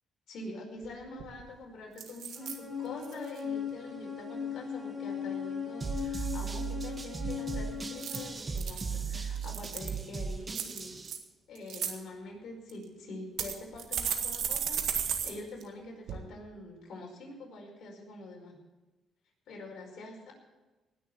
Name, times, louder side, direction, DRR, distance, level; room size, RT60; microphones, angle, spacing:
voice 1, 0.3-11.0 11.5-18.6 19.5-20.3, left 2 dB, 65° left, -1 dB, 5.2 m, -45 dB
sound 1, 0.8-0.9 1.2-1.5 2.0-2.6 3.0-3.4 7.9-8.8 9.4-10.0 10.5-11.2 11.6-11.9 12.7-12.8 13.4-15.3 15.6-15.7 16.1-16.2, right 8 dB, 75° right, 1.8 m, -34 dB
sound 2, 2.4-8.3, left 7 dB, ahead, 3.7 m, -38 dB
sound 3, 5.8-11.1, right 5 dB, 30° right, 1.1 m, -37 dB
19.0 x 6.6 x 8.4 m, 1.1 s
cardioid pair, 90°, 0 cm